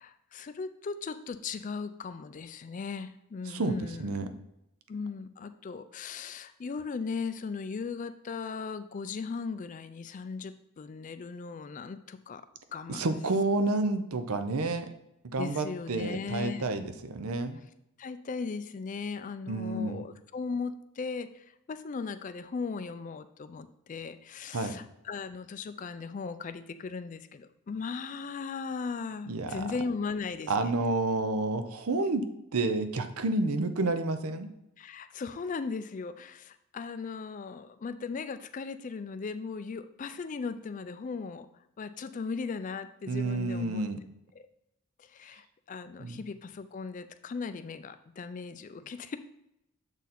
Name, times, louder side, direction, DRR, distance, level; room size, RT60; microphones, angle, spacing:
voice 1, 0.0-4.1 4.9-12.4 12.7-13.1 15.4-16.7 18.0-30.7 34.8-41.5 41.8-43.9 44.3-44.5 45.0-49.2, left 4 dB, 35° left, 11 dB, 0.3 m, -38 dB
voice 2, 12.9-14.9 15.3-17.6 19.5-20.0 24.5-24.8 29.3-29.6 30.5-34.5 43.1-44.0 46.0-46.2, right 2 dB, 80° right, 9 dB, 0.6 m, -30 dB
7.2 x 3.9 x 4.2 m, 0.84 s
head